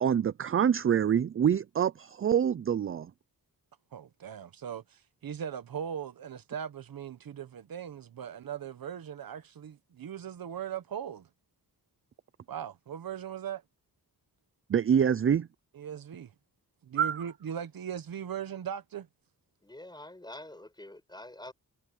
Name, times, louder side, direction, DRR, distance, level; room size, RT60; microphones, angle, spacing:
voice 1, 0.0-3.1 14.7-15.5 17.0-17.2, right 8 dB, 35° right, 0.4 m, -26 dB
voice 2, 3.9-11.3 12.5-13.6 15.7-16.3 16.8-19.1, right 8 dB, 70° right, 1.2 m, -39 dB
voice 3, 19.6-21.5, left 1 dB, 10° left, 6.1 m, -46 dB
wide cardioid pair, 120°, 37 cm